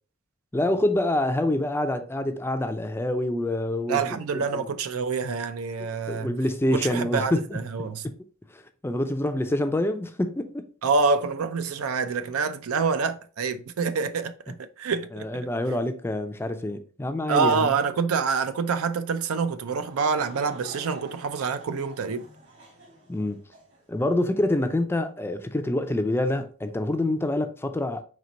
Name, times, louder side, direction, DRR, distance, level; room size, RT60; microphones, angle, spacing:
voice 1, 0.5-4.7 6.1-7.6 8.0-8.1 8.5-10.7 15.1-17.7 23.1-23.4 23.9-28.0, left 1 dB, 10° left, 0.4 m, -26 dB
voice 2, 3.9-6.3 6.8-8.0 10.8-15.3 17.3-22.2, right 5 dB, 80° right, 0.5 m, -26 dB
Laughter / Crowd, 19.6-23.8, right 2 dB, 60° right, 1.9 m, -47 dB
4.4 x 3.0 x 4.0 m
head